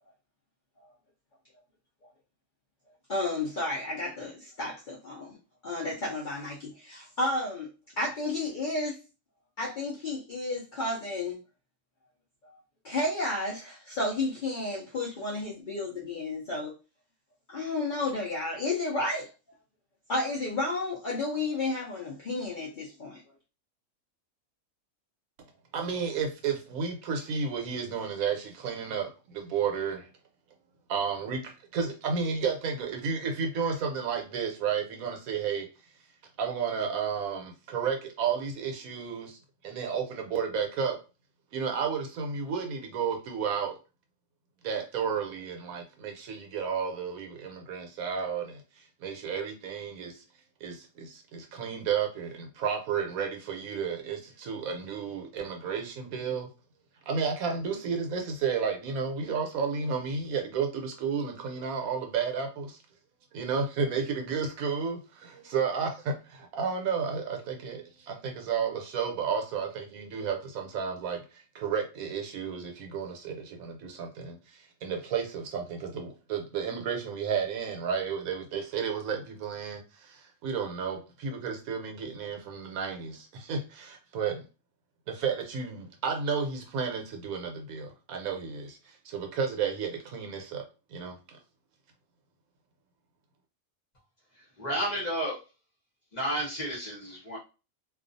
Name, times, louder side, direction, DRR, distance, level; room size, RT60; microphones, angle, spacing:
voice 1, 3.1-5.4 5.6-7.7 8.0-9.0 9.6-11.4 12.4-12.6 12.8-16.7 17.5-19.3 20.1-23.2, left 2 dB, 70° left, 0.4 m, -32 dB
voice 2, 25.7-30.1 30.9-35.7 36.4-39.4 39.6-41.0 41.5-43.8 44.6-50.2 50.6-56.5 57.1-62.8 63.3-84.4 85.1-90.6 90.9-91.4, right 6 dB, 75° right, 1.0 m, -32 dB
voice 3, 94.6-95.3 96.1-97.4, equal, 35° left, 0.7 m, -31 dB
2.4 x 2.3 x 2.5 m
omnidirectional pair, 1.5 m